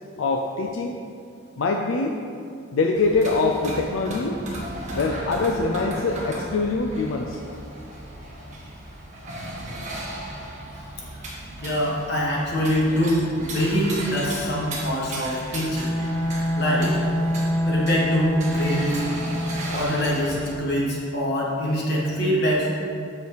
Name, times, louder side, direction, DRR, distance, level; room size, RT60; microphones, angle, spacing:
voice 1, 0.2-0.9 1.6-2.2 2.7-4.4 4.9-7.4, left 3 dB, 70° left, 2 dB, 0.4 m, -24 dB
sound 1, 2.9-20.6, right 1 dB, 35° right, 1.3 m, -35 dB
voice 2, 11.6-15.9 16.6-17.0 17.7-19.0 19.7-22.7, equal, 50° left, -4 dB, 1.4 m, -24 dB
Bowed string instrument, 15.7-20.0, equal, 10° left, 0.4 m, -25 dB
6.1 x 5.3 x 5.0 m, 2.4 s
head